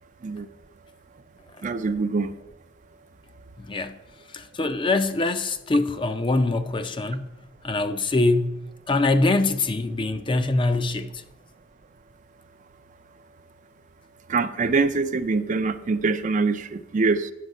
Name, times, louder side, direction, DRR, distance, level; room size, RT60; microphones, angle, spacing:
voice 1, 1.6-2.3 14.3-17.3, right 4 dB, 40° right, 0.4 m, -24 dB
voice 2, 3.6-4.0 4.3-7.3 7.6-11.2, left 2 dB, 25° left, 0.4 m, -24 dB
9.4 x 6.6 x 5.3 m
head